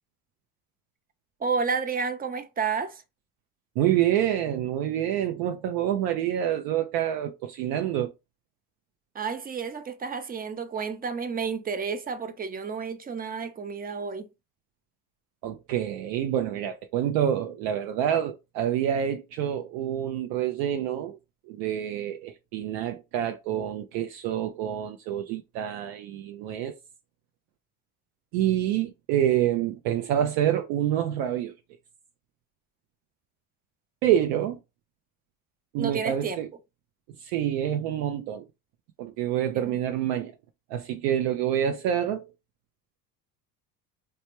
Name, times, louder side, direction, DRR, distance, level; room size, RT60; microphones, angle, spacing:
voice 1, 1.4-3.0 9.1-14.3 35.8-36.4 39.5-39.8, right 5 dB, 20° right, 0.5 m, -31 dB
voice 2, 3.8-8.1 15.4-21.2 21.5-26.8 28.3-31.5 34.0-34.6 35.7-36.5 37.2-38.5 39.0-40.3 40.7-42.3, right 10 dB, 75° right, 0.5 m, -27 dB
3.2 x 2.2 x 2.8 m
supercardioid pair, 85°, 42 cm